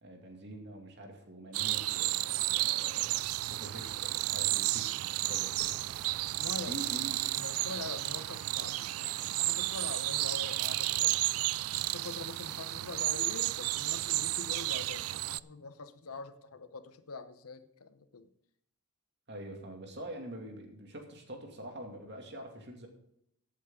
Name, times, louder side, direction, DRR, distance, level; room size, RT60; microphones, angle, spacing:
voice 1, 0.0-3.2 3.4-5.8 6.6-7.4 19.3-22.9, right 1 dB, 50° right, 3 dB, 2.4 m, -45 dB
sound 1, 1.5-15.4, right 18 dB, 80° right, 0.3 m, -32 dB
sound 2, 5.6-12.2, left 2 dB, 50° left, 5.2 m, -59 dB
voice 2, 6.4-11.2 11.9-18.3, left 4 dB, 90° left, 11 dB, 0.9 m, -44 dB
15.5 x 8.4 x 3.8 m, 0.76 s
head